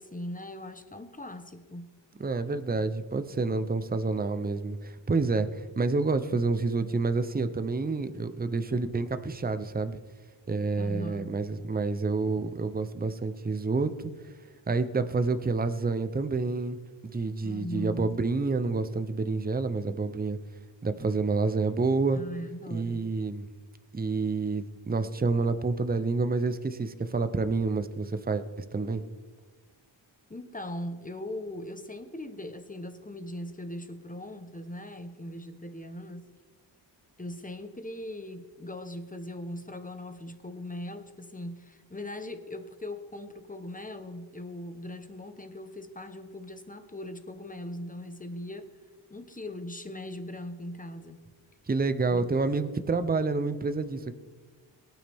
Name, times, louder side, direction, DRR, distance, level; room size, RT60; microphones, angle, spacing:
voice 1, 0.0-1.9 10.8-11.4 17.4-18.2 22.1-23.1 30.3-36.3 37.2-48.7 49.1-51.2 52.1-52.3, left 1 dB, 20° left, 8 dB, 0.9 m, -40 dB
voice 2, 2.2-10.0 10.5-14.1 14.7-16.8 17.1-20.4 20.8-22.2 22.7-23.4 23.9-29.0 51.7-54.1, right 3 dB, 20° right, 11 dB, 0.6 m, -28 dB
22.5 x 9.2 x 3.5 m, 1.4 s
wide cardioid pair, 125°, 46 cm